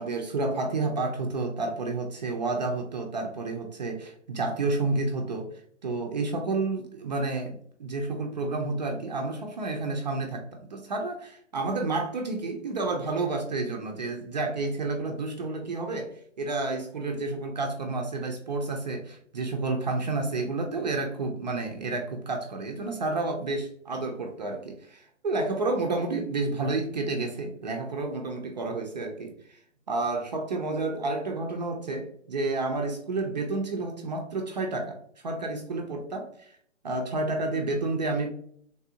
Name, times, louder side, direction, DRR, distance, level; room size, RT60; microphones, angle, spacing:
voice 1, 0.0-29.6 29.9-35.0 35.2-36.6 36.8-38.3, right 3 dB, 35° right, 3 dB, 0.4 m, -30 dB
3.4 x 2.5 x 2.7 m, 0.62 s
hypercardioid pair, 140°, 37 cm